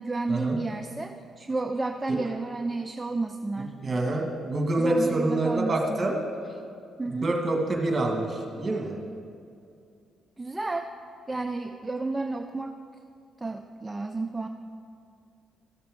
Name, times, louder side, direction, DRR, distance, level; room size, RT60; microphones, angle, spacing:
voice 1, 0.0-3.8 4.8-6.1 7.0-7.3 10.4-10.9 11.3-12.8 13.4-14.5, right 3 dB, 15° right, 5 dB, 0.4 m, -31 dB
voice 2, 3.8-6.2 7.0-9.0, right 2 dB, 35° right, 1 dB, 1.6 m, -26 dB
13.5 x 6.8 x 3.6 m, 2.4 s
cardioid pair, 90°, 0 cm